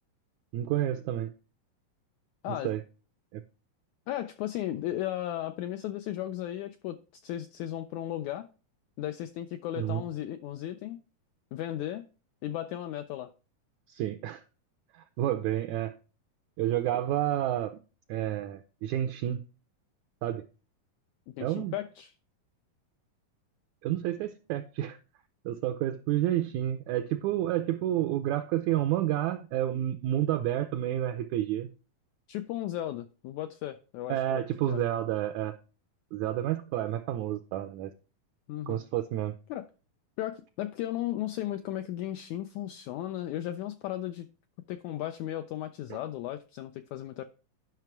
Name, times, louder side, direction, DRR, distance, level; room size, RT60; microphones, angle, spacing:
voice 1, 0.5-1.3 2.5-2.8 3.3-3.4 9.8-10.0 13.9-14.4 15.2-15.9 16.6-17.8 18.1-19.4 20.2-20.4 21.4-21.7 23.8-25.0 25.4-31.7 34.1-35.6 36.1-37.9 38.7-39.3 45.9-46.0, right 12 dB, 85° right, 1.7 m, -30 dB
voice 2, 4.1-8.5 9.0-11.0 11.5-12.0 12.4-13.3 21.3-22.1 32.3-34.4 34.7-34.8 38.5-38.8 39.5-39.7 40.2-44.3 44.7-47.2, left 13 dB, 80° left, 1.7 m, -35 dB
10.5 x 6.0 x 4.5 m
omnidirectional pair, 3.9 m